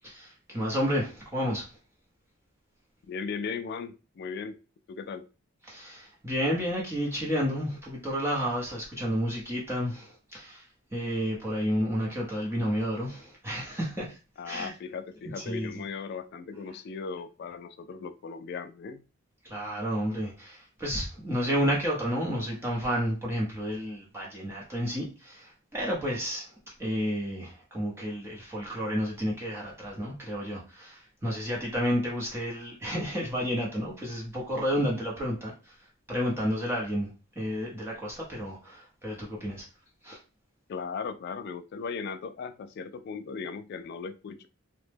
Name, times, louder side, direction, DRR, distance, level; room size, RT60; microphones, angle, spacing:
voice 1, 0.0-1.7 5.7-10.6 10.9-14.2 14.5-14.7 15.4-15.7 19.4-26.5 26.8-35.7 36.1-37.1 37.4-39.6 40.0-40.2, equal, 10° right, 0.7 m, -31 dB
voice 2, 3.1-4.6 4.9-5.3 14.4-19.0 40.7-44.5, left 5 dB, 55° left, 0.3 m, -37 dB
3.0 x 2.1 x 3.3 m
head